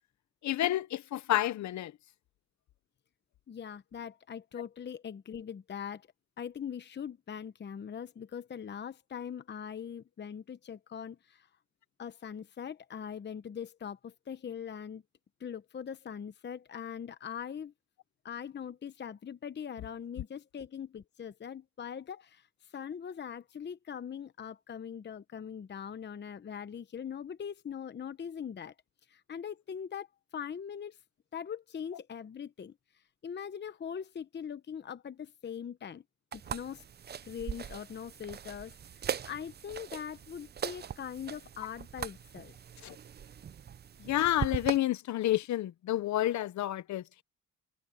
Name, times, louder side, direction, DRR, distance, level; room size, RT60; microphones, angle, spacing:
voice 1, 0.4-1.9 42.8-43.0 44.0-47.2, left 14 dB, 70° left, 0.9 m, -30 dB
voice 2, 3.5-6.1 6.4-11.5 12.0-15.0 15.4-17.7 18.2-28.7 29.1-30.1 30.3-31.0 31.3-36.0 36.3-36.8 37.2-42.5, left 8 dB, 35° left, 0.9 m, -41 dB
sound 1, 36.3-44.8, right 8 dB, 35° right, 0.5 m, -40 dB
cardioid pair, 90°, 30 cm